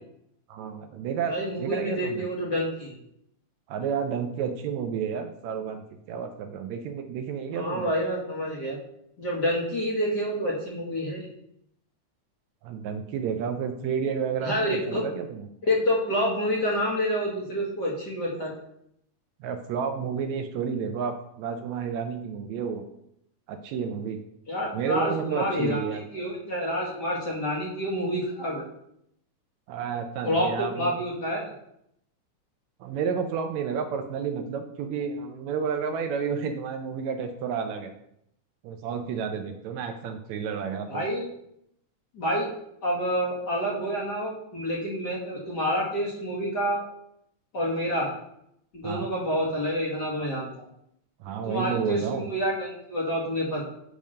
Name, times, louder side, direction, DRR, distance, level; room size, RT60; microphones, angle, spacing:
voice 1, 0.5-1.3 1.6-2.2 3.7-5.8 6.1-7.9 12.6-15.5 19.4-22.9 23.5-24.2 24.7-26.0 29.7-31.0 32.8-37.9 38.6-41.0 48.8-49.1 51.2-52.3, right 6 dB, 75° right, 6 dB, 1.8 m, -31 dB
voice 2, 1.3-2.9 7.5-8.8 9.2-11.3 14.4-15.0 15.6-18.5 24.5-28.6 30.2-31.5 40.9-41.2 42.1-42.5 42.8-46.8 47.5-48.1 48.7-50.5 51.5-53.6, equal, 40° left, -5 dB, 1.8 m, -28 dB
8.6 x 3.5 x 6.3 m, 0.75 s
omnidirectional pair, 3.5 m